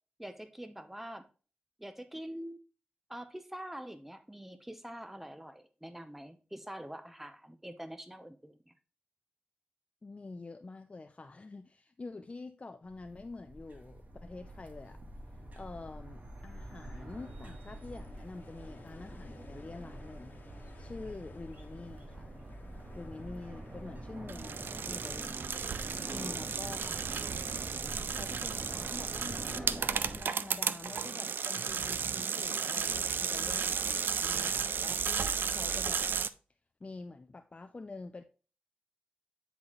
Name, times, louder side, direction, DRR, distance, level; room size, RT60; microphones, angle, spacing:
voice 1, 0.2-1.2 1.8-2.6 3.1-8.7, right 1 dB, 5° right, 0.7 m, -45 dB
voice 2, 10.0-15.0 15.3-20.4 20.8-22.3 22.9-25.5 26.1-27.1 28.1-36.1 36.8-38.2, left 3 dB, 35° left, 0.5 m, -47 dB
sound 1, 12.9-30.2, right 1 dB, 50° right, 1.5 m, -45 dB
sound 2, 17.1-27.7, left 3 dB, 65° left, 1.2 m, -59 dB
sound 3, 24.3-36.3, right 6 dB, 80° right, 0.3 m, -34 dB
9.4 x 4.0 x 3.0 m
cardioid pair, 60°, 3 cm